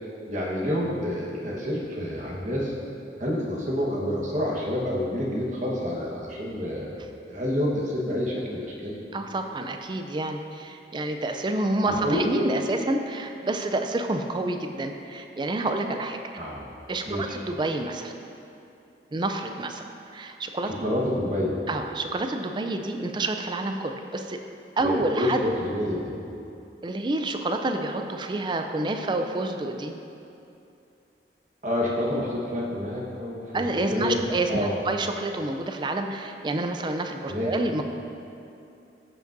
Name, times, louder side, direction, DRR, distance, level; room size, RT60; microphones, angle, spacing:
voice 1, 0.3-2.7 3.2-7.0 7.2-9.0 11.9-12.3 16.4-16.7 17.0-17.4 20.6-21.6 24.8-26.1 31.6-34.2 34.5-34.7 37.3-37.5, left 1 dB, 45° right, -4 dB, 1.2 m, -28 dB
voice 2, 9.1-16.2 16.9-18.1 19.1-19.8 20.1-20.8 21.7-24.4 24.8-25.4 26.8-29.9 33.5-37.8, right 2 dB, 25° right, 5 dB, 0.4 m, -28 dB
14.0 x 5.1 x 2.6 m, 2.8 s
head